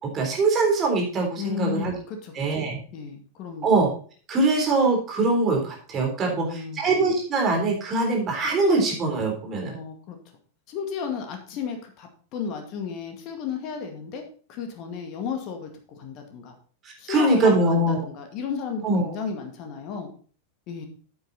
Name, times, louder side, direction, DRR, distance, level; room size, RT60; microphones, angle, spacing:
voice 1, 0.0-1.9 2.4-2.8 3.6-3.9 4.3-9.8 16.8-18.0 18.8-19.1, right 3 dB, 25° right, 1 dB, 3.7 m, -23 dB
voice 2, 1.4-2.3 2.6-3.7 6.2-6.8 9.6-10.2 10.7-14.2 14.5-16.5 17.0-20.1 20.7-20.9, left 6 dB, 40° left, 4 dB, 2.1 m, -33 dB
8.9 x 8.1 x 4.2 m, 0.42 s
figure-of-eight pair, 90°, 0 cm